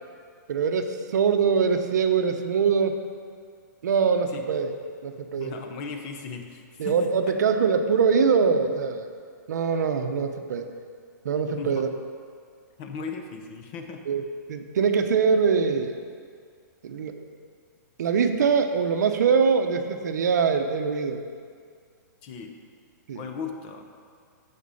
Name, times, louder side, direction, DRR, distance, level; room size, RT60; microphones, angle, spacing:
voice 1, 0.5-2.9 3.8-4.7 5.0-5.5 6.8-9.0 9.5-10.7 11.2-11.9 14.1-14.2 14.5-15.9 16.8-17.1 18.0-21.2 23.1-23.2, right 6 dB, 65° right, 6 dB, 0.9 m, -23 dB
voice 2, 5.4-7.4 11.5-11.9 12.8-14.0 22.2-22.6 23.1-23.9, left 5 dB, 25° left, 5 dB, 0.8 m, -37 dB
15.0 x 5.3 x 5.6 m, 2.1 s
hypercardioid pair, 170°, 10 cm